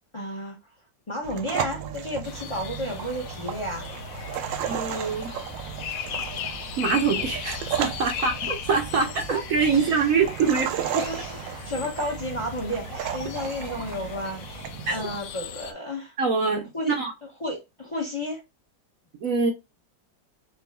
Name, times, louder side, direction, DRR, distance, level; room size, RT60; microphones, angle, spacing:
voice 1, 0.1-0.6 1.1-3.9 8.1-8.2 9.3-9.4 9.7-10.1 10.5-10.6 11.1-16.2 16.7-16.9 17.2-18.4, left 1 dB, 25° left, 0.7 m, -32 dB
sound 1, 1.2-15.2, right 10 dB, 85° right, 1.3 m, -35 dB
sound 2, 2.2-15.7, left 9 dB, 90° left, 1.4 m, -37 dB
voice 2, 4.7-5.3 6.8-11.1 14.9-15.0 16.2-17.1 19.2-19.5, right 5 dB, 60° right, 1.0 m, -24 dB
6.7 x 2.4 x 2.3 m
omnidirectional pair, 2.0 m